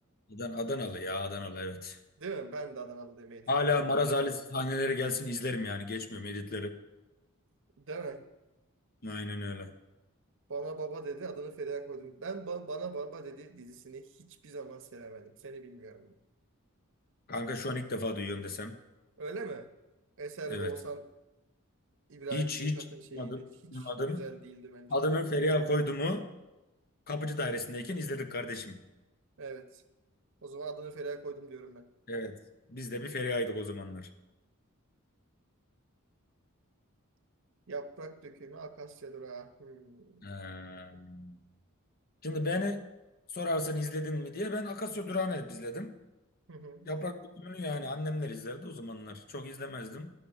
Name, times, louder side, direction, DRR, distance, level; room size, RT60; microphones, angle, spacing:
voice 1, 0.3-2.0 3.5-6.7 9.0-9.7 17.3-18.8 20.5-20.7 22.3-22.8 23.1-23.4 23.7-24.2 24.9-26.3 27.1-28.8 32.1-32.3 32.7-34.1 40.2-41.4 42.2-42.8 43.3-45.9 46.8-50.1, left 2 dB, 45° left, 8 dB, 0.9 m, -33 dB
voice 2, 2.2-3.8 7.8-8.2 10.5-16.1 19.2-19.7 20.2-21.1 22.1-24.9 29.4-29.8 30.4-31.9 37.7-40.2 46.5-46.9, right 4 dB, 60° right, 10 dB, 0.8 m, -41 dB
11.0 x 5.9 x 7.0 m, 1.0 s
head